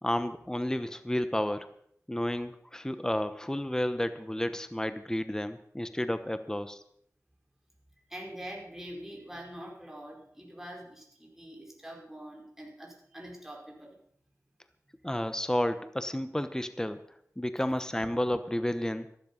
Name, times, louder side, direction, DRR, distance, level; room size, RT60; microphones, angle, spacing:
voice 1, 0.0-1.7 2.1-6.8 15.0-17.0 17.4-19.1, left 1 dB, 10° left, 11 dB, 1.0 m, -31 dB
voice 2, 8.1-14.0 17.6-17.7, equal, 5° right, -1 dB, 4.7 m, -44 dB
14.0 x 12.5 x 5.5 m, 0.67 s
cardioid pair, 45°, 6 cm